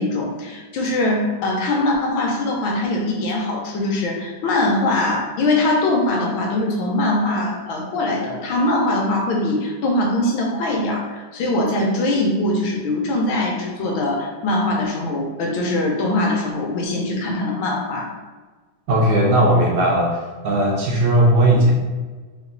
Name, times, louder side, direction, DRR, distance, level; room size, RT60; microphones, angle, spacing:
voice 1, 0.0-18.1, left 2 dB, 75° left, -1 dB, 1.5 m, -22 dB
voice 2, 18.9-20.1 20.4-21.7, right 1 dB, 70° right, -2 dB, 1.2 m, -16 dB
3.6 x 3.0 x 3.8 m, 1.3 s
omnidirectional pair, 2.3 m